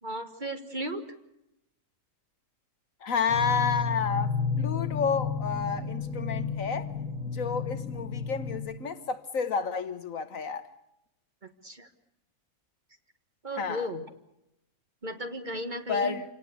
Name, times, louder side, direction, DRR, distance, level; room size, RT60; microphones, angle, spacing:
voice 1, 0.0-1.0 11.6-11.9 13.4-14.0 15.0-16.2, equal, 30° right, 1.6 m, -35 dB
voice 2, 3.0-6.9 7.2-10.7 13.6-13.9 15.9-16.2, left 6 dB, 65° left, 1.5 m, -30 dB
sound 1, 3.3-8.6, left 5 dB, 65° right, 6.8 m, -32 dB
27.0 x 18.5 x 8.3 m
omnidirectional pair, 1.6 m